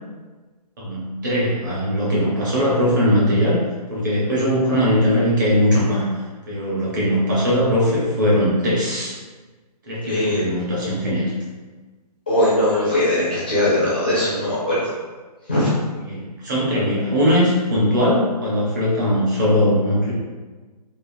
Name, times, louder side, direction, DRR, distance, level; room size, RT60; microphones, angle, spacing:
voice 1, 0.8-3.6 3.9-6.1 6.5-9.1 9.9-11.3 16.1-20.1, equal, 30° right, -7 dB, 0.7 m, -20 dB
voice 2, 10.1-10.4 12.3-14.9 15.5-15.8, left 1 dB, 15° left, -9 dB, 0.4 m, -20 dB
3.3 x 2.0 x 2.5 m, 1.3 s
hypercardioid pair, 170°, 21 cm